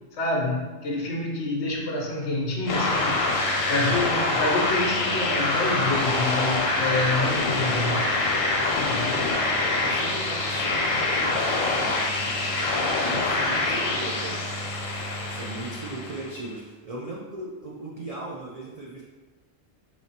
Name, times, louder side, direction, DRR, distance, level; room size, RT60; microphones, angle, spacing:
voice 1, 0.1-8.0 8.8-9.2, left 2 dB, 65° left, -1 dB, 1.0 m, -28 dB
sound 1, 2.7-16.4, left 2 dB, 90° left, 1.1 m, -25 dB
voice 2, 3.8-4.3 9.3-14.4 15.3-19.0, right 2 dB, 60° right, -4 dB, 0.4 m, -38 dB
4.7 x 2.8 x 2.8 m, 1.2 s
omnidirectional pair, 1.3 m